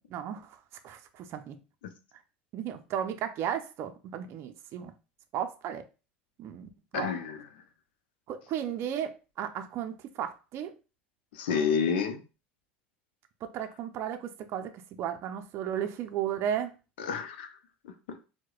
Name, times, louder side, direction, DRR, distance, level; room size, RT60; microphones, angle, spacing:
voice 1, 0.1-0.6 0.8-1.6 2.5-4.9 5.3-5.8 6.4-7.1 8.3-10.7 13.4-14.7 15.0-16.8, right 9 dB, 50° right, 0.5 m, -34 dB
voice 2, 6.9-7.4 11.3-12.2 17.0-17.5 17.8-18.3, left 6 dB, 75° left, 0.6 m, -30 dB
4.6 x 2.1 x 2.3 m
hypercardioid pair, 80°, 6 cm